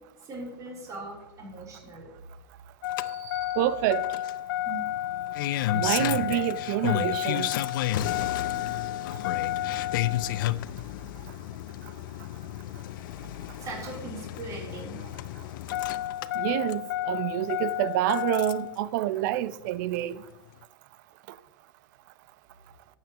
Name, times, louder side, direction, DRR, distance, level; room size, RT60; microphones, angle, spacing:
voice 1, 0.2-2.1 3.0-3.7 4.5-4.9 13.6-15.0, right 3 dB, 30° right, 3.5 m, -40 dB
Engine starting, 2.8-18.8 20.0-20.1, left 13 dB, 65° left, 0.5 m, -31 dB
voice 2, 3.6-4.0 5.7-7.5 16.3-20.2, right 13 dB, 55° right, 0.6 m, -27 dB
12.0 x 8.7 x 3.0 m
hypercardioid pair, 120°, 12 cm